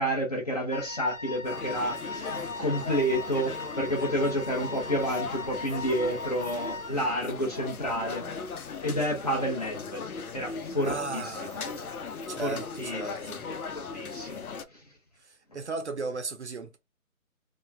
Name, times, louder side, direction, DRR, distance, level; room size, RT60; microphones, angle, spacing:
voice 1, 0.0-8.3 8.8-10.0 10.3-11.8 12.4-13.0 13.7-14.4, equal, 30° left, 0.8 m, -30 dB
Wind instrument woodwind instrument, 0.7-7.1, left 2 dB, 65° left, 1.0 m, -39 dB
sound 1, 1.4-14.7, left 5 dB, 90° left, 0.7 m, -38 dB
voice 2, 10.8-11.8 12.3-13.4 15.2-16.8, right 3 dB, 55° right, 0.7 m, -36 dB
3.0 x 2.2 x 2.2 m
figure-of-eight pair, 165°, 42 cm